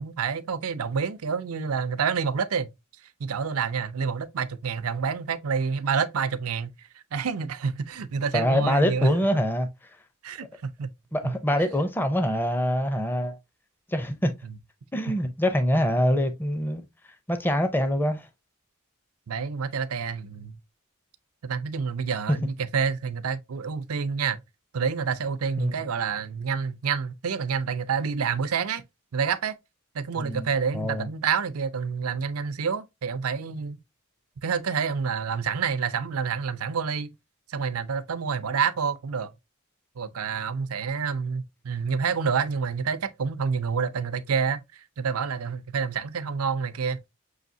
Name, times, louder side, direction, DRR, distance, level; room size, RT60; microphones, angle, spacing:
voice 1, 0.0-2.7 3.2-9.4 10.2-10.9 11.2-11.4 14.4-14.5 15.7-15.9 19.3-20.6 21.4-24.4 24.7-28.8 29.1-29.6 29.9-33.8 34.4-37.1 37.5-39.3 40.0-47.0, right 6 dB, 85° right, 0.5 m, -28 dB
voice 2, 8.3-9.7 11.1-13.4 13.9-14.3 14.9-16.9 17.3-18.3 22.3-22.4 25.6-25.8 30.2-30.5 30.7-31.1, equal, 10° left, 0.5 m, -24 dB
6.4 x 2.7 x 2.6 m
head